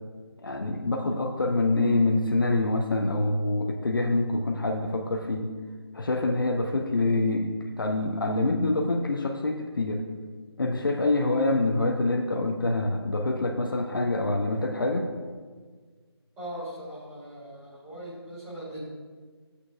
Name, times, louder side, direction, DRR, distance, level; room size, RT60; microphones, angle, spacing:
voice 1, 0.4-5.5 5.9-10.0 10.6-15.1, left 2 dB, 50° left, 3 dB, 0.7 m, -26 dB
voice 2, 16.4-18.8, right 1 dB, 5° right, -11 dB, 2.2 m, -40 dB
13.5 x 8.2 x 2.5 m, 1.5 s
figure-of-eight pair, 160°, 14 cm